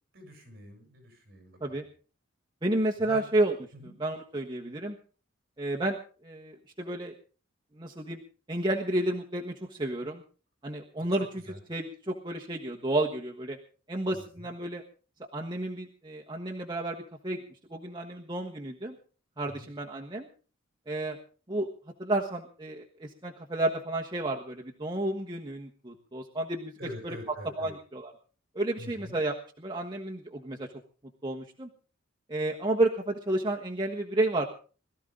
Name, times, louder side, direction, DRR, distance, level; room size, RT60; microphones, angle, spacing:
voice 1, 0.1-1.8 3.0-3.2 3.7-3.9 11.0-11.6 14.1-14.5 19.5-19.7 26.8-27.7 28.8-29.2, equal, 50° right, 4 dB, 7.8 m, -45 dB
voice 2, 2.6-3.5 4.0-5.0 5.6-6.0 6.2-7.1 7.7-8.2 8.5-10.2 10.6-13.6 13.9-14.8 15.3-17.4 17.7-19.0 19.4-20.3 20.9-21.2 21.5-21.7 22.0-26.7 27.0-27.2 27.6-28.1 28.5-30.7 31.2-31.7 32.3-34.4, right 1 dB, 20° right, -1 dB, 1.3 m, -31 dB
22.0 x 14.0 x 3.8 m, 0.38 s
head